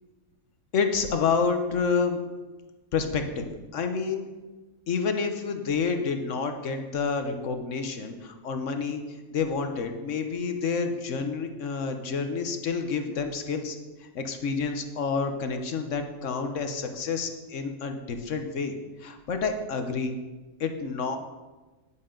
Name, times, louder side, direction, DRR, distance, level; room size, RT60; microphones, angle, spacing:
voice 1, 0.7-2.2 2.9-3.5 3.7-4.3 4.9-9.0 9.3-13.8 14.1-18.7 19.0-20.2 20.6-21.2, left 5 dB, 60° left, 6 dB, 1.2 m, -29 dB
9.9 x 9.8 x 3.8 m, 1.2 s
omnidirectional pair, 1.6 m